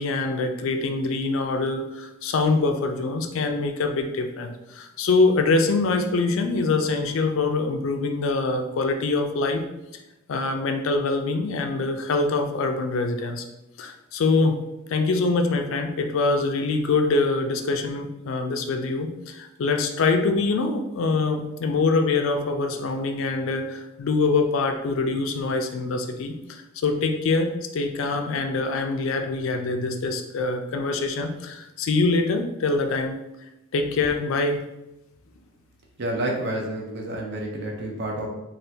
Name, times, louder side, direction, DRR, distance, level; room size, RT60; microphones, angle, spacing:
voice 1, 0.0-9.7 10.3-13.4 13.8-14.6 14.9-33.2 33.7-34.6, left 3 dB, 65° left, 6 dB, 0.3 m, -24 dB
voice 2, 36.0-38.3, right 1 dB, 50° right, 0 dB, 0.6 m, -29 dB
3.4 x 2.3 x 2.7 m, 0.93 s
head